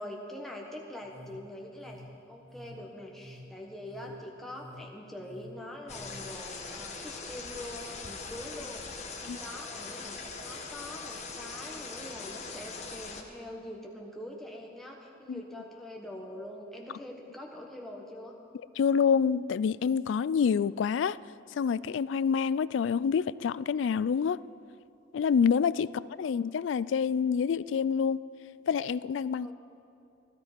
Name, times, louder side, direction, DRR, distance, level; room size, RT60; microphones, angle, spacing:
voice 1, 0.0-2.0 2.3-18.4 25.8-25.9 29.4-29.5, left 1 dB, ahead, -2 dB, 1.3 m, -44 dB
sound 1, 1.0-6.2, left 1 dB, 85° right, 3.8 m, -51 dB
sound 2, 5.9-13.2, left 4 dB, 35° left, 1.3 m, -41 dB
voice 2, 18.8-21.2 21.6-24.4 25.1-28.2 28.7-29.5, left 6 dB, 75° left, 19 dB, 0.3 m, -27 dB
16.0 x 14.0 x 5.1 m, 2.6 s
head